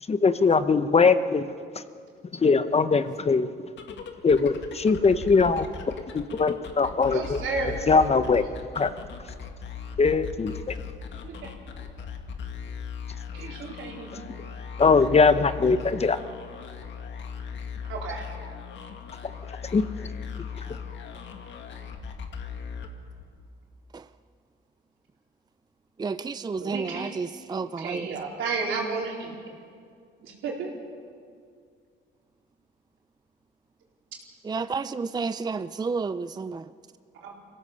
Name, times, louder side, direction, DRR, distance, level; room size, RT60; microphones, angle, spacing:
voice 1, 0.1-1.5 2.3-3.5 4.2-5.7 6.1-7.4 7.9-8.4 8.7-8.9 10.0-10.7 14.8-16.2 19.7-19.8, left 4 dB, 30° left, 11 dB, 0.9 m, -21 dB
sound 1, 3.7-23.4, left 6 dB, 65° left, 1.9 m, -38 dB
voice 2, 7.0-7.8 11.2-11.5 13.3-14.2 17.9-18.3 26.6-27.2 27.8-29.5 30.2-30.7 37.2-37.3, right 4 dB, 85° right, -1 dB, 4.1 m, -32 dB
voice 3, 26.0-28.1 34.4-36.7, right 4 dB, 20° right, 13 dB, 0.5 m, -31 dB
24.5 x 16.5 x 6.9 m, 2.2 s
cardioid pair, 90°, 20 cm